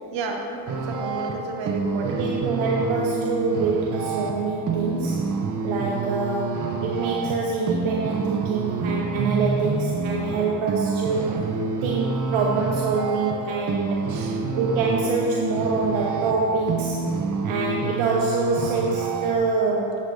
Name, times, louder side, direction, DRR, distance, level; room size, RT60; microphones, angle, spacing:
voice 1, 0.1-2.4 14.1-14.4, right 3 dB, 65° right, 1 dB, 1.2 m, -32 dB
sound 1, 0.7-19.4, right 4 dB, 40° right, 0.7 m, -28 dB
voice 2, 2.0-5.3 5.6-11.4 11.8-14.1 14.6-17.0 17.4-20.0, right 4 dB, 85° right, -1 dB, 0.8 m, -25 dB
9.5 x 7.6 x 2.6 m, 2.6 s
cardioid pair, 75°, 47 cm